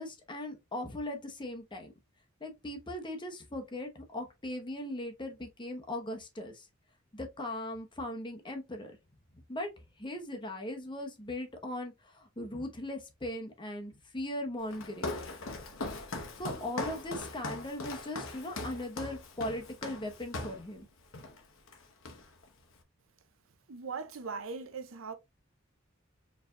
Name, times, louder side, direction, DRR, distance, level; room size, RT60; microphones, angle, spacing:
voice 1, 0.0-1.9 2.4-6.7 7.1-9.0 9.5-9.7 10.0-15.2 16.4-20.9, left 1 dB, 25° left, 0.9 m, -39 dB
Walk footsteps, 14.7-20.7 21.1-21.4 21.7-22.5, left 2 dB, 75° left, 1.0 m, -40 dB
voice 2, 23.7-25.1, right 5 dB, 80° right, 0.7 m, -39 dB
4.4 x 3.3 x 2.5 m
head